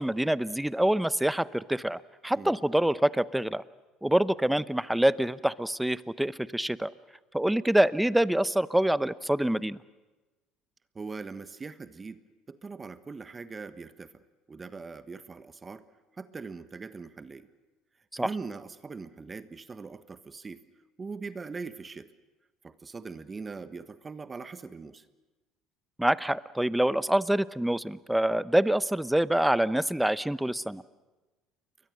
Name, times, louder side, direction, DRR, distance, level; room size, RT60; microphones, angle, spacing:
voice 1, 0.0-3.6 4.0-6.9 7.3-9.8 18.2-18.3 26.0-30.8, right 1 dB, 5° right, 17 dB, 0.8 m, -26 dB
voice 2, 10.9-12.2 12.5-14.1 14.5-15.8 16.2-17.5 18.2-20.6 21.0-22.1 22.6-25.0, right 4 dB, 25° right, 12 dB, 1.3 m, -41 dB
29.5 x 23.0 x 6.5 m, 1.2 s
hypercardioid pair, 65°, 0 cm